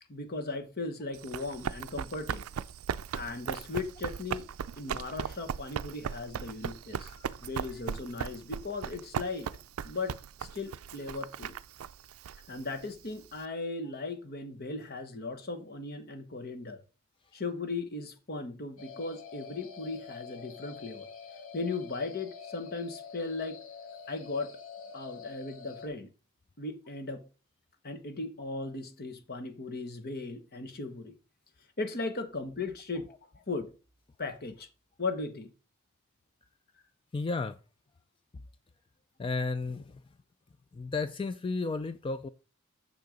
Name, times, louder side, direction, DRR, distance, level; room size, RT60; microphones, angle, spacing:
voice 1, 0.1-2.4 3.1-4.4 4.8-7.1 7.4-9.5 9.8-11.6 12.5-16.8 17.3-21.1 21.5-23.6 24.1-24.5 24.9-26.1 26.6-27.2 27.8-31.1 31.8-33.7 34.2-34.7 35.0-35.5, left 3 dB, 45° left, 1.2 m, -37 dB
Run, 1.1-13.4, right 7 dB, 75° right, 0.4 m, -38 dB
sound 1, 18.8-25.9, left 6 dB, 70° left, 1.5 m, -46 dB
voice 2, 37.1-37.6 39.2-40.0 40.7-42.3, left 3 dB, 25° left, 0.3 m, -33 dB
6.8 x 6.7 x 5.0 m
head